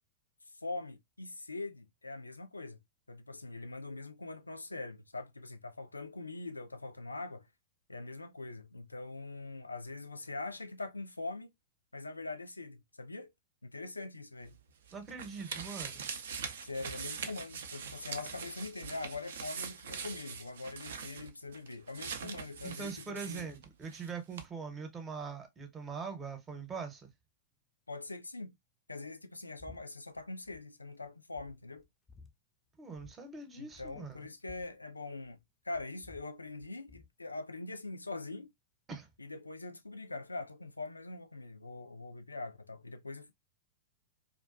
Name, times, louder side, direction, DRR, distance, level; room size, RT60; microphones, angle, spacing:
voice 1, 0.5-2.8 3.1-7.5 7.9-11.5 11.9-13.3 13.6-14.6 16.6-23.5 27.9-28.6 28.9-31.8 33.5-38.5 39.2-43.3, left 3 dB, 90° left, 0.3 m, -43 dB
sound 1, 14.5-24.1 24.4-24.5, right 6 dB, 70° right, 0.4 m, -43 dB
voice 2, 14.9-16.1 22.2-22.3 22.6-27.1 32.8-34.3 38.9-39.1, right 5 dB, 20° right, 0.8 m, -42 dB
sound 2, 29.6-29.8 30.1-30.6 31.0-31.1 31.4-32.3 32.9-33.2 33.4-33.5 33.7-35.4 35.7-37.1, left 5 dB, 15° left, 0.4 m, -56 dB
2.4 x 2.3 x 2.3 m
figure-of-eight pair, 100°, 0 cm